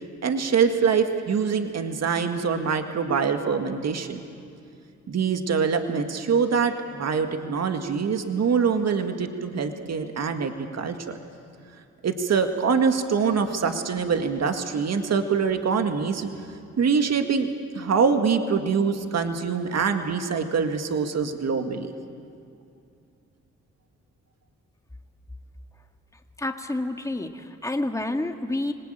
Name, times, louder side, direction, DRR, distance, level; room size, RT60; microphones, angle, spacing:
voice 1, 0.2-4.2 5.1-11.2 12.0-16.3 16.8-17.5 17.8-21.9, right 6 dB, 60° right, 6 dB, 1.9 m, -24 dB
voice 2, 26.4-28.7, left 2 dB, 10° left, 5 dB, 1.8 m, -29 dB
25.5 x 19.0 x 9.1 m, 2.5 s
cardioid pair, 60°, 30 cm